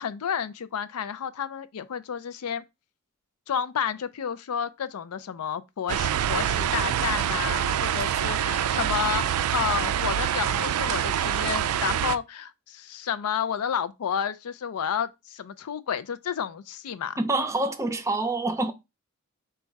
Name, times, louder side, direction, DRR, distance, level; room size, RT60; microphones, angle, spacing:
voice 1, 0.0-2.6 3.5-17.2, left 8 dB, 85° left, 0.4 m, -31 dB
sound 1, 5.9-12.2, right 9 dB, 80° right, 0.3 m, -26 dB
voice 2, 17.2-18.7, right 2 dB, 15° right, 0.5 m, -26 dB
4.0 x 2.3 x 4.5 m
head